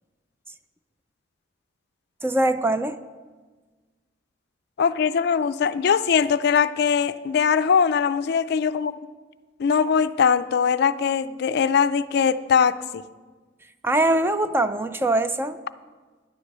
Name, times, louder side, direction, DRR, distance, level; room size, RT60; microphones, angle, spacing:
voice 1, 2.2-3.0 13.8-15.6, right 2 dB, 15° right, 10 dB, 0.4 m, -22 dB
voice 2, 4.8-8.9 9.6-13.0, left 6 dB, 60° left, 13 dB, 0.4 m, -21 dB
10.5 x 8.0 x 6.7 m, 1.4 s
head